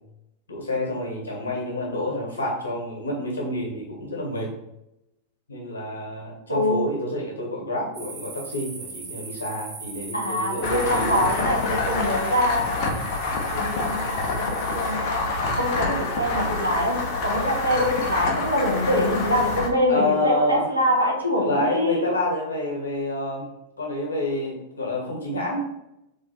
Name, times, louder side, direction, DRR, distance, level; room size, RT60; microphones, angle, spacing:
voice 1, 0.5-4.5 5.5-11.2 19.9-20.7 21.4-23.5 23.8-25.7, left 1 dB, 70° left, 0 dB, 1.4 m, -28 dB
voice 2, 6.5-6.9 10.1-12.7 13.5-22.0, left 1 dB, 85° right, -1 dB, 1.0 m, -24 dB
sound 1, 7.9-14.9, right 4 dB, 35° right, 1.2 m, -40 dB
sound 2, 10.6-19.7, left 3 dB, 40° left, 0.9 m, -27 dB
3.4 x 3.3 x 4.4 m, 0.87 s
figure-of-eight pair, 90°, 0 cm